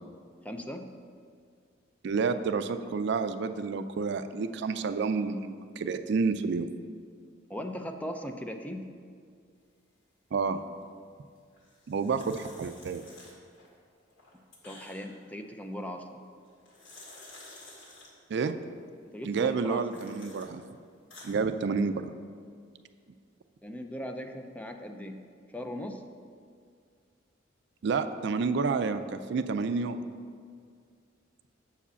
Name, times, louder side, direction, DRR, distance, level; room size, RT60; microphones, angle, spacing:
voice 1, 0.4-0.9 7.5-8.9 14.6-16.2 19.1-20.0 23.6-25.2 25.5-26.0, equal, 10° left, 5 dB, 0.4 m, -39 dB
voice 2, 2.0-6.7 10.3-10.6 11.9-13.0 18.3-18.6 19.2-20.6 21.2-22.1 27.8-30.0, right 4 dB, 60° right, 10 dB, 0.4 m, -29 dB
sound 1, 11.6-13.7 14.1-15.2 16.4-18.1 19.3-20.5 20.9-21.3, left 2 dB, 90° left, 2.1 m, -51 dB
7.2 x 4.9 x 6.9 m, 2.1 s
head